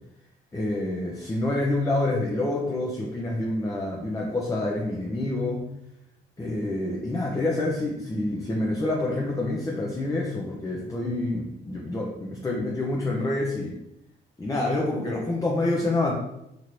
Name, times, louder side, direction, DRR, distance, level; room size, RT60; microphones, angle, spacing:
voice 1, 0.5-5.7 6.4-13.8 14.4-16.1, left 2 dB, 15° left, -2 dB, 0.5 m, -27 dB
2.9 x 2.6 x 3.0 m, 0.83 s
cardioid pair, 90°, 20 cm